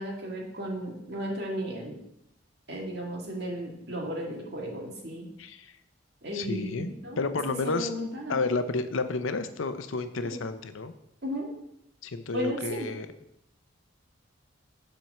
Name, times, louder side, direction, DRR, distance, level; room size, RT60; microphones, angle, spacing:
voice 1, 0.0-2.0 2.7-5.3 6.2-7.2 7.6-8.4 10.2-10.4 11.2-11.5 12.3-12.9, equal, 55° right, -1 dB, 2.0 m, -34 dB
voice 2, 5.4-5.7 6.3-6.9 7.2-7.9 8.3-10.9 12.0-13.1, left 3 dB, 85° left, 10 dB, 0.7 m, -31 dB
7.7 x 4.5 x 6.5 m, 0.78 s
head